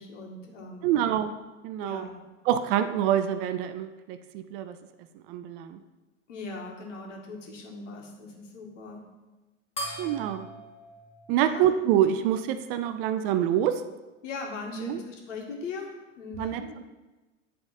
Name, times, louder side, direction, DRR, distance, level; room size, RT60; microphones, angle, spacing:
voice 1, 0.0-0.8 1.8-2.2 6.3-9.0 11.3-11.7 14.2-16.8, left 3 dB, 65° left, 1 dB, 1.8 m, -39 dB
voice 2, 0.8-1.3 1.6-2.1 2.5-4.8 5.3-5.8 10.0-10.5 11.3-13.8 14.8-15.0 16.4-16.6, right 10 dB, 45° right, 10 dB, 0.5 m, -26 dB
sound 1, 9.8-12.6, right 1 dB, 15° left, 2.0 m, -41 dB
10.5 x 3.7 x 4.1 m, 1.1 s
figure-of-eight pair, 90°, 39 cm